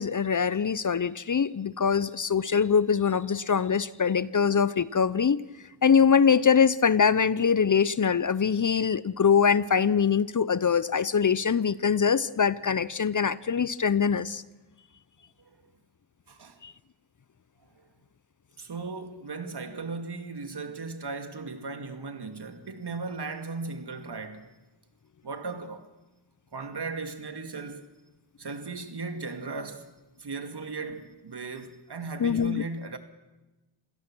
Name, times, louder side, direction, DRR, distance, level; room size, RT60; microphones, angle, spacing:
voice 1, 0.0-5.4 5.8-14.4 16.6-16.7 32.2-32.6, left 6 dB, 40° left, 0.8 m, -23 dB
voice 2, 16.3-16.6 17.7-17.8 18.6-24.5 25.2-25.9 26.5-27.9 28.4-29.9 30.2-33.0, right 4 dB, 55° right, 2.4 m, -37 dB
27.0 x 17.0 x 6.3 m
cardioid pair, 40°, 47 cm